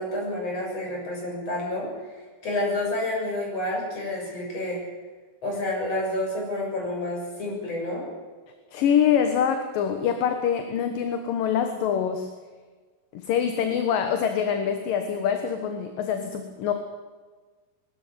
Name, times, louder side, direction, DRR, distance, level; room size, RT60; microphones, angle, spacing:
voice 1, 0.0-4.8 5.4-8.0, left 1 dB, 40° left, -2 dB, 8.0 m, -29 dB
voice 2, 8.7-12.3 13.1-16.7, left 8 dB, 65° left, 6 dB, 2.8 m, -25 dB
23.0 x 13.0 x 9.4 m, 1.4 s
omnidirectional pair, 4.6 m